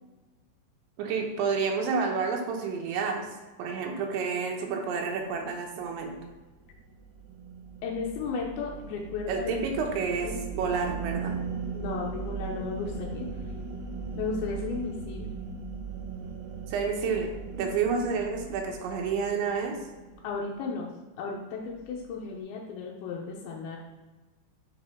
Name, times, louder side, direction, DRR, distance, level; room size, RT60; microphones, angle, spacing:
voice 1, 1.0-3.3 3.6-6.1 9.3-11.4 16.7-19.8, right 5 dB, 90° right, 2 dB, 3.3 m, -29 dB
sound 1, 6.0-20.5, right 5 dB, 75° right, 2.4 m, -38 dB
voice 2, 7.8-9.7 10.2-10.6 11.7-13.3 14.1-15.3 20.2-20.9 21.2-23.8, left 5 dB, 80° left, -2 dB, 2.2 m, -34 dB
7.6 x 4.8 x 3.6 m, 1.2 s
omnidirectional pair, 5.2 m